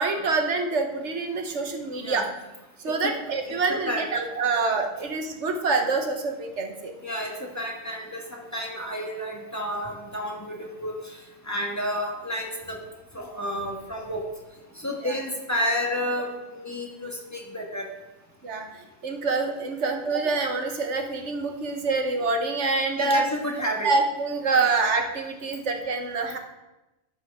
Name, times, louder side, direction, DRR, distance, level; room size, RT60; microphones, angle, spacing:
voice 1, 0.0-2.3 2.8-6.9 15.0-15.1 18.4-18.7 19.0-23.2 23.8-26.4, right 3 dB, 70° right, 4 dB, 1.5 m, -26 dB
voice 2, 3.4-4.1 7.0-10.9 11.5-12.8 13.1-14.2 14.8-17.8 23.0-23.9, equal, 15° left, -1 dB, 1.6 m, -31 dB
12.5 x 9.5 x 3.6 m, 1.0 s
omnidirectional pair, 1.2 m